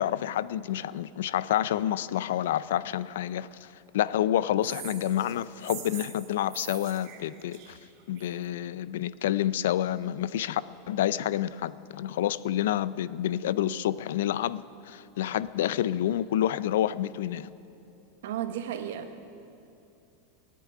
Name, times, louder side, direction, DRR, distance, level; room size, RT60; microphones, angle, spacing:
voice 1, 0.0-3.7 3.9-7.8 8.1-10.6 10.9-17.5, left 11 dB, 85° left, 17 dB, 0.5 m, -28 dB
sound 1, 4.6-8.4, right 10 dB, 40° right, 1.4 m, -44 dB
voice 2, 18.2-19.2, right 10 dB, 80° right, 8 dB, 1.2 m, -34 dB
18.0 x 8.5 x 9.5 m, 2.7 s
supercardioid pair, 175°, 0 cm